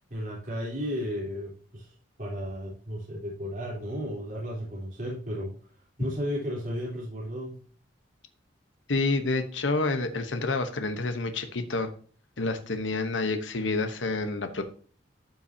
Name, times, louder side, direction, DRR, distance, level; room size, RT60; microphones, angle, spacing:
voice 1, 0.1-5.5 6.0-7.6, equal, 45° right, -6 dB, 3.6 m, -34 dB
voice 2, 8.9-11.9 12.4-14.6, left 3 dB, 90° left, 8 dB, 1.1 m, -28 dB
12.5 x 5.8 x 2.8 m, 0.42 s
head